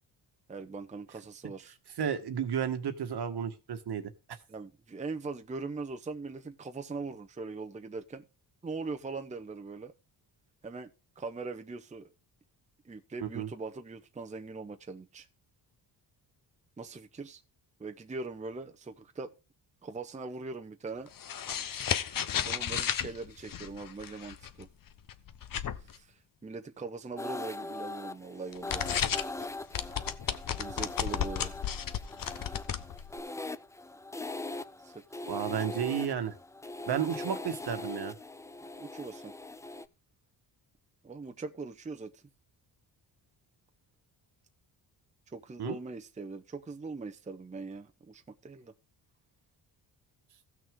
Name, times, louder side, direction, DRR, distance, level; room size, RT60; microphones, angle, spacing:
voice 1, 0.5-1.8 4.5-8.2 8.6-9.9 10.6-12.1 12.8-15.3 16.8-17.4 17.8-19.3 19.8-21.1 21.7-21.9 22.4-24.7 25.8-28.8 30.6-31.5 34.8-35.0 38.8-39.3 41.0-42.2 45.3-48.7, right 3 dB, 15° right, 0.7 m, -41 dB
voice 2, 2.0-4.1 13.2-13.5 35.3-36.3 36.9-38.1 45.6-45.8, right 8 dB, 60° right, 1.5 m, -32 dB
sound 1, 21.1-26.0 28.5-29.5 29.7-33.2, left 9 dB, 50° left, 0.9 m, -34 dB
sound 2, 27.2-39.9, left 2 dB, 5° left, 0.4 m, -41 dB
15.5 x 6.3 x 3.7 m
cardioid pair, 90°, 44 cm